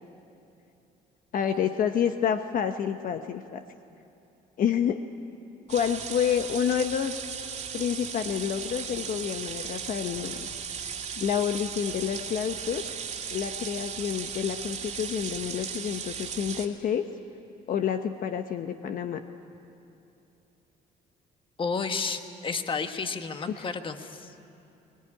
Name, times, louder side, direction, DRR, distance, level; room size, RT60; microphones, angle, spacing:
voice 1, 1.3-3.6 4.6-5.0 5.7-7.1 7.7-10.5 11.2-12.8 13.3-17.1 17.7-19.2 23.5-23.7, left 8 dB, 55° left, 7 dB, 1.0 m, -28 dB
sound 1, 5.7-16.7, right 7 dB, 45° right, 2.3 m, -36 dB
voice 2, 21.6-24.3, left 4 dB, 30° left, 7 dB, 1.5 m, -31 dB
22.0 x 20.5 x 9.9 m, 2.8 s
cardioid pair, 110°, 17 cm